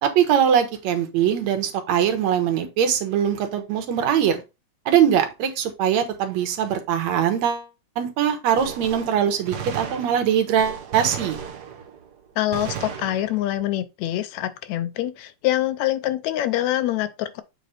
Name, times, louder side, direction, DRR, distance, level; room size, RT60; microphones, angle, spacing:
voice 1, 0.0-4.4 4.9-7.7 8.0-11.4, right 9 dB, 70° right, 2.3 m, -22 dB
Gunshot gunfire, 8.6-12.1 12.5-13.6, right 8 dB, 90° right, 0.8 m, -35 dB
voice 2, 12.4-17.4, left 13 dB, 75° left, 1.8 m, -25 dB
8.1 x 4.1 x 4.1 m
omnidirectional pair, 3.4 m